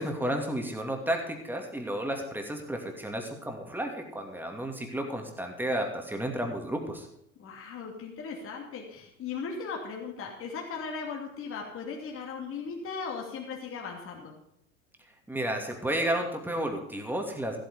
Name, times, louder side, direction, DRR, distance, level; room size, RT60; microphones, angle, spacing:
voice 1, 0.0-7.1 15.3-17.6, right 1 dB, 5° right, 3 dB, 2.7 m, -32 dB
voice 2, 7.4-14.4, left 5 dB, 35° left, 0 dB, 2.8 m, -37 dB
14.5 x 9.0 x 5.2 m, 0.76 s
figure-of-eight pair, 75°, 39 cm